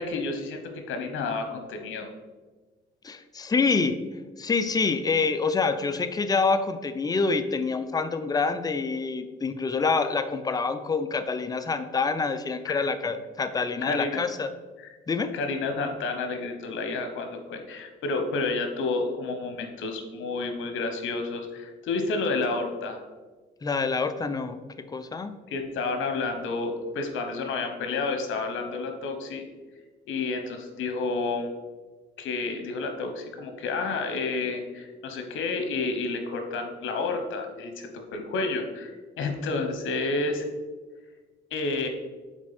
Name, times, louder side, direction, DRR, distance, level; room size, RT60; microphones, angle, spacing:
voice 1, 0.0-2.1 12.6-12.9 13.6-14.2 14.8-14.9 15.3-23.1 25.5-29.4 30.1-31.5 32.2-40.5 41.5-41.9, left 3 dB, 80° left, 5 dB, 1.0 m, -30 dB
voice 2, 3.0-4.0 4.4-14.5 15.1-15.3 23.6-24.6 24.9-25.4, left 4 dB, 20° left, 9 dB, 0.5 m, -26 dB
6.1 x 4.3 x 4.1 m, 1.3 s
cardioid pair, 90°, 20 cm